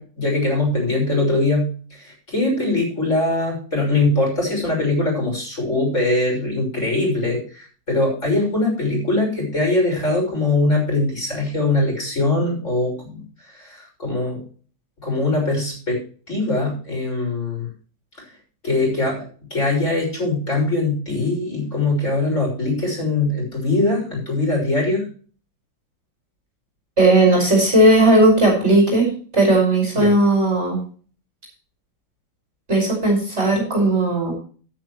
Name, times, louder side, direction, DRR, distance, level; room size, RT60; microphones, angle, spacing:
voice 1, 0.0-14.4 15.0-16.0 16.3-17.7 18.2-18.3 18.6-25.1 29.9-30.1, left 2 dB, 35° left, -1 dB, 6.7 m, -22 dB
voice 2, 27.0-30.8 32.7-34.3, right 1 dB, 30° right, 0 dB, 5.9 m, -16 dB
13.0 x 12.5 x 3.1 m, 0.41 s
omnidirectional pair, 2.3 m